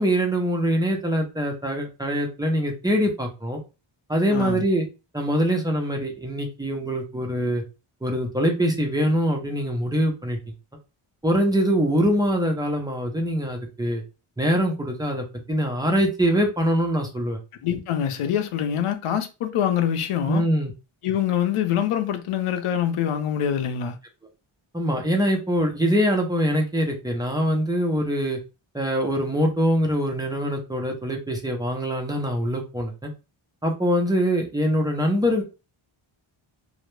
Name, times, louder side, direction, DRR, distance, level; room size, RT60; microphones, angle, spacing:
voice 1, 0.0-3.6 4.1-4.9 5.1-7.6 8.0-10.4 11.2-14.0 14.4-17.4 20.3-20.7 24.7-28.4 28.7-33.1 33.6-35.4, equal, 10° right, 0.4 m, -23 dB
voice 2, 4.3-4.6 17.6-20.4 21.0-24.0, left 9 dB, 85° left, 0.6 m, -25 dB
2.1 x 2.0 x 3.0 m
wide cardioid pair, 140°, 50 cm